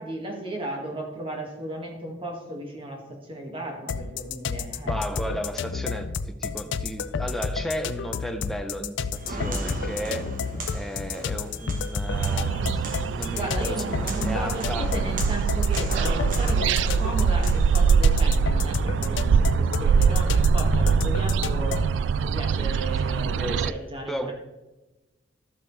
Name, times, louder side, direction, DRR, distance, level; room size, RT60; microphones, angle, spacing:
voice 1, 0.0-5.0 13.3-21.8 22.2-24.3, right 1 dB, 30° right, 0 dB, 1.9 m, -35 dB
sound 1, 3.9-22.0, left 5 dB, 80° left, 0.4 m, -31 dB
voice 2, 4.8-9.0 9.3-10.3 10.7-12.9 13.1-14.9 23.4-23.8 24.1-24.3, equal, ahead, 5 dB, 0.7 m, -34 dB
Walk footsteps, 9.1-17.9, right 2 dB, 45° right, 1.3 m, -37 dB
sound 2, 12.1-23.7, right 6 dB, 75° right, 0.3 m, -23 dB
12.5 x 7.4 x 3.3 m, 1.1 s
head